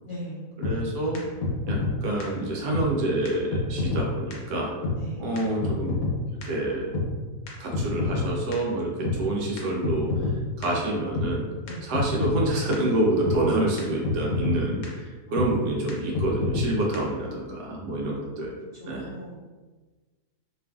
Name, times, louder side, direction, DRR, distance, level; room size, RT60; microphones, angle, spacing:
voice 1, 0.1-0.5 5.0-5.3 10.6-10.8 11.6-11.8 15.3-15.4 18.8-19.6, right 1 dB, 85° left, -8 dB, 0.4 m, -39 dB
sound 1, 0.6-0.7 1.1-1.2 1.4-1.9 2.2-2.3 2.7-2.8 3.3-3.4 3.5-4.0 4.3-4.4 4.8-5.0 5.4-5.5 5.6-6.1 6.4-6.5 6.9-7.1 7.5-8.2 8.5-8.6 9.0-9.2 9.6-9.7 9.8-10.3 10.6-10.7 11.2-11.3 11.7-11.8 11.9-12.5 12.7-12.8 13.3-13.4 13.8-13.9 14.0-14.6 14.8-14.9 15.4-15.5 15.9-16.0 16.2-16.7 16.9-17.0, left 4 dB, 65° left, 1.0 m, -26 dB
voice 2, 0.6-1.2 1.7-4.7 5.2-6.0 6.4-6.9 7.6-10.1 10.6-11.5 11.8-18.5 18.9-19.1, right 1 dB, 80° right, -2 dB, 1.3 m, -27 dB
3.1 x 2.4 x 2.2 m, 1.3 s
omnidirectional pair, 1.8 m